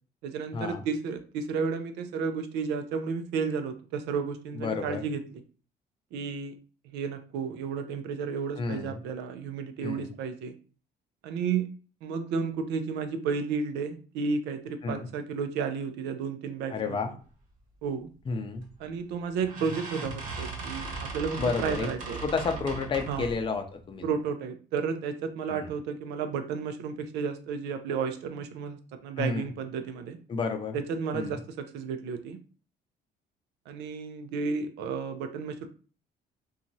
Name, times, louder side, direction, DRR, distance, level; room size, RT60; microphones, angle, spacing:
voice 1, 0.2-5.4 6.1-6.6 6.9-10.5 11.2-11.7 12.0-17.0 17.8-18.1 18.8-22.2 23.1-23.3 24.0-30.2 30.7-32.4 33.7-35.7, right 5 dB, 90° right, 8 dB, 0.5 m, -32 dB
voice 2, 4.5-5.0 8.6-9.0 9.8-10.1 14.8-15.1 16.7-17.1 18.3-18.7 21.4-21.9 22.2-24.1 25.5-25.7 29.2-29.5 30.3-30.8 31.1-31.4, left 4 dB, 30° left, 7 dB, 0.5 m, -31 dB
sound 1, 18.6-18.9 19.4-23.5, right 3 dB, 50° right, 0.9 m, -38 dB
2.9 x 2.3 x 2.6 m, 0.38 s
cardioid pair, 110°, 17 cm